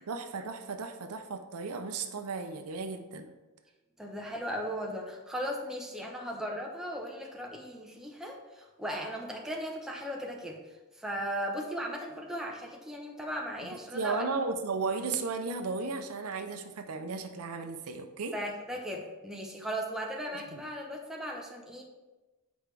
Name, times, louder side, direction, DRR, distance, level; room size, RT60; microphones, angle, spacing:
voice 1, 0.1-3.3 13.6-18.3 20.3-20.6, right 4 dB, 70° right, 6 dB, 0.6 m, -35 dB
voice 2, 4.0-10.6 11.0-14.3 18.3-21.8, equal, ahead, -1 dB, 0.8 m, -37 dB
8.0 x 4.6 x 3.3 m, 1.1 s
head